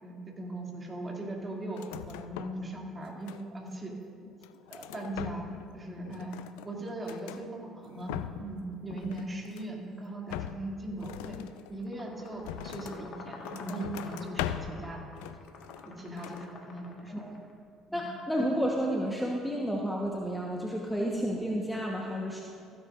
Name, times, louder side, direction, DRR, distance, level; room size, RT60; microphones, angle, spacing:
voice 1, 0.0-1.8 2.1-3.9 4.7-5.5 5.7-6.4 6.6-8.1 8.4-11.4 11.7-15.2 15.8-17.3 17.9-18.1, right 2 dB, 25° right, -2 dB, 2.6 m, -39 dB
sound 1, 1.7-2.7 3.0-3.7 4.2-5.7 6.0-7.4 7.9-8.6 8.9-9.8 10.3-13.0 13.4-14.8 15.2-15.9 16.2-16.5, left 12 dB, 75° left, 0.4 m, -41 dB
sound 2, 11.8-17.5, left 3 dB, 55° left, 1.5 m, -48 dB
voice 2, 17.9-22.4, equal, ahead, -2 dB, 1.2 m, -31 dB
15.5 x 10.0 x 2.6 m, 2.3 s
hypercardioid pair, 55°, 0 cm